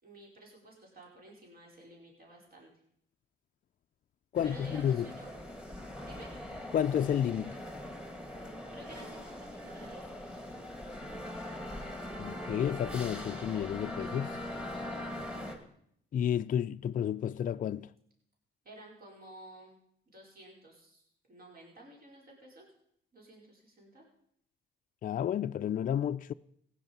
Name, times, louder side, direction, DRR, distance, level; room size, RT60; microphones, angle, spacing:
voice 1, 0.0-2.7 4.4-5.3 6.0-6.3 8.7-10.0 14.9-15.4 18.6-19.8 20.1-21.0 21.3-22.7 23.1-24.1, right 1 dB, 50° right, 5.1 m, -52 dB
voice 2, 4.3-5.1 6.7-7.6 12.2-14.4 16.1-17.9 25.0-26.3, left 9 dB, 45° left, 0.4 m, -31 dB
sound 1, 4.3-15.6, left 1 dB, 5° right, 2.4 m, -41 dB
16.5 x 9.8 x 5.4 m
cardioid pair, 90°, 20 cm